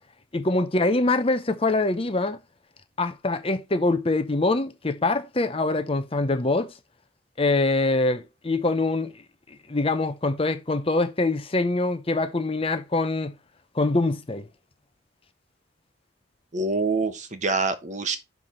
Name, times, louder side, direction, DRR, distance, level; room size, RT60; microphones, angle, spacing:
voice 1, 0.3-2.4 3.0-6.7 7.4-9.1 9.7-13.3 13.7-14.5, left 2 dB, 30° left, 0.7 m, -24 dB
voice 2, 16.5-18.2, right 3 dB, 35° right, 1.0 m, -25 dB
5.9 x 4.6 x 5.1 m
head